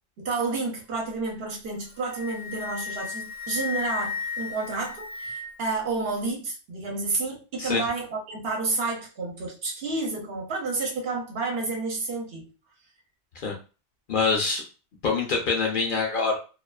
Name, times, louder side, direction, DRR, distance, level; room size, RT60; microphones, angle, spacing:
voice 1, 0.2-12.5, right 3 dB, 65° right, 1 dB, 0.9 m, -30 dB
Wind instrument woodwind instrument, 1.8-5.7, left 5 dB, 25° right, 0.5 m, -34 dB
voice 2, 14.1-14.6 15.0-16.4, left 4 dB, 55° left, 0 dB, 0.7 m, -25 dB
2.3 x 2.3 x 2.2 m, 0.33 s
omnidirectional pair, 1.2 m